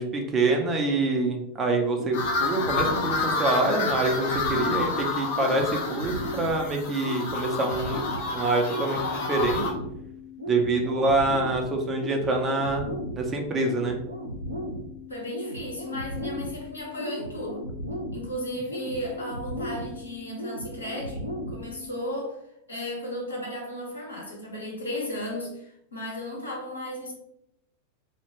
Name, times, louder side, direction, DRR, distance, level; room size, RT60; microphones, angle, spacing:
voice 1, 0.0-8.0 8.3-9.6 10.5-14.0, right 2 dB, 20° right, 2 dB, 0.4 m, -26 dB
sound 1, 2.0-22.0, equal, 85° right, 0.5 m, -36 dB
sound 2, 2.1-9.7, left 4 dB, 50° left, 0.4 m, -29 dB
voice 2, 15.1-17.6 18.1-22.4 22.7-27.1, left 1 dB, 75° left, -2 dB, 0.8 m, -35 dB
2.2 x 2.1 x 3.0 m, 0.81 s
figure-of-eight pair, 90°, 0 cm